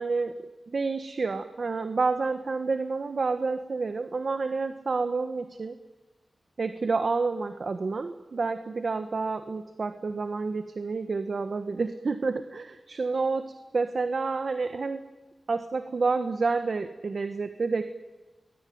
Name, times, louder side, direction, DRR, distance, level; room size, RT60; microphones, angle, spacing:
voice 1, 0.0-5.8 6.6-15.0 15.5-17.8, right 4 dB, 60° right, 9 dB, 1.3 m, -29 dB
28.5 x 22.0 x 9.5 m, 1.2 s
wide cardioid pair, 95°, 0 cm